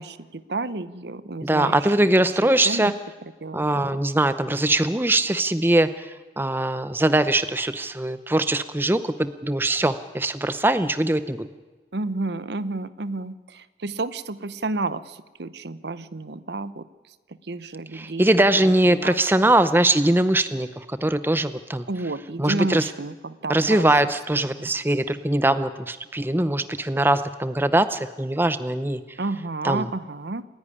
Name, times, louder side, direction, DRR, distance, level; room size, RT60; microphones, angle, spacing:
voice 1, 0.0-2.1 2.6-2.9 3.4-4.0 11.9-16.9 17.4-18.3 18.5-19.2 21.9-23.9 24.4-24.7 29.2-30.4, right 3 dB, 70° right, 15 dB, 0.8 m, -31 dB
voice 2, 1.4-2.9 3.5-11.5 17.9-21.9 22.4-22.9 23.5-29.2 29.6-29.9, right 1 dB, 10° right, 12 dB, 0.6 m, -22 dB
28.0 x 10.5 x 9.9 m, 1.3 s
head